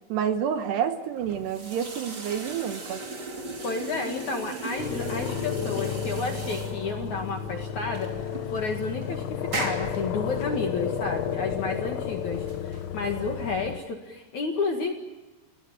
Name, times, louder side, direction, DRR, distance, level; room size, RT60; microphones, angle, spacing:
voice 1, 0.1-3.0, right 8 dB, 70° right, 8 dB, 2.8 m, -28 dB
sound 1, 1.2-13.6, right 2 dB, 30° right, 2.5 m, -38 dB
voice 2, 3.6-14.9, left 4 dB, 55° left, 3 dB, 2.4 m, -31 dB
sound 2, 4.8-13.8, left 8 dB, 85° left, 3.8 m, -32 dB
29.5 x 18.0 x 7.6 m, 1.2 s
omnidirectional pair, 5.7 m